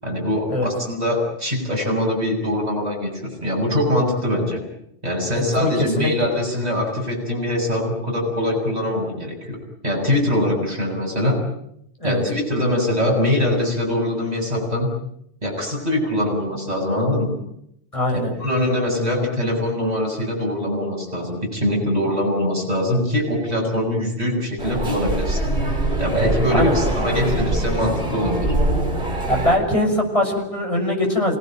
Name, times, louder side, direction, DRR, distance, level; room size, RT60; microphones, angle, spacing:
voice 1, 0.0-4.6 5.0-9.6 9.8-11.4 12.0-14.9 15.4-17.4 18.1-25.4 26.0-28.5, left 1 dB, 35° right, -2 dB, 7.6 m, -23 dB
voice 2, 5.3-6.1 12.0-12.2 17.9-18.3 26.5-26.8 29.3-31.4, left 1 dB, 30° left, 1 dB, 6.5 m, -21 dB
sound 1, 24.6-29.6, right 1 dB, 55° right, 6.3 m, -23 dB
29.0 x 18.0 x 9.1 m, 0.74 s
omnidirectional pair, 1.1 m